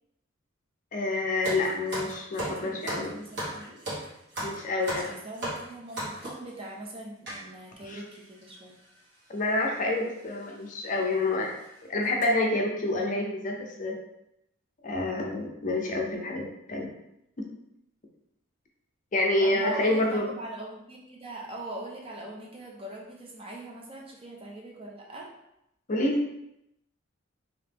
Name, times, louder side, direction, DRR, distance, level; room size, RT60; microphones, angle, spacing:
voice 1, 0.9-3.1 4.4-5.1 7.8-8.0 9.3-11.6 11.9-14.0 14.8-16.9 17.4-17.5 19.1-20.3 25.9-26.2, left 2 dB, 40° left, 1 dB, 0.5 m, -28 dB
sound 1, 1.4-6.5 7.3-7.4 8.1-8.2 8.4-8.6 9.6-9.8 10.2-10.4 10.9-11.0 11.4-11.6 12.0-12.2, right 1 dB, 55° right, 1.4 m, -36 dB
voice 2, 2.4-3.8 4.9-8.7 19.4-25.3, right 1 dB, 25° right, -1 dB, 0.6 m, -41 dB
3.0 x 2.8 x 3.4 m, 0.82 s
head